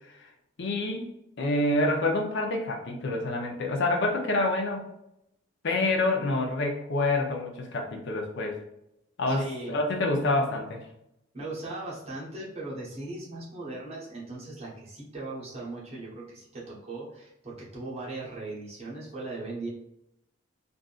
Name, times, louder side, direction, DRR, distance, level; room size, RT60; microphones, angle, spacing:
voice 1, 0.6-1.1 1.4-4.8 5.6-8.6 9.2-10.8, left 2 dB, 60° left, 2 dB, 0.6 m, -27 dB
voice 2, 9.3-9.7 11.3-19.7, right 2 dB, 30° right, -6 dB, 1.2 m, -38 dB
3.6 x 2.6 x 2.4 m, 0.83 s
head